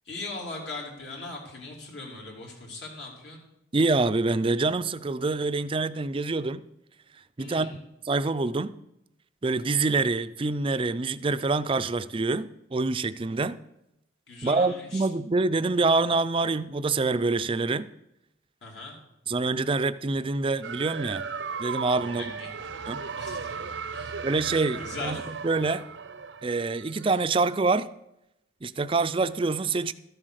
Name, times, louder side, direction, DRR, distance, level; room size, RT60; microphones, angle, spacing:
voice 1, 0.0-3.4 7.4-7.9 14.3-15.1 18.6-19.0 22.0-22.5 23.2-24.2 24.8-25.3, left 2 dB, 65° left, 3.1 m, -40 dB
voice 2, 3.7-6.6 7.4-7.7 8.1-8.7 9.4-13.6 14.4-17.9 19.3-21.2 21.6-22.2 22.9-23.0 24.2-25.2 25.4-25.8 26.4-27.9 28.6-29.9, right 3 dB, 30° right, 0.4 m, -26 dB
sound 1, 20.6-27.2, right 5 dB, 70° right, 0.6 m, -36 dB
13.5 x 7.6 x 6.5 m
head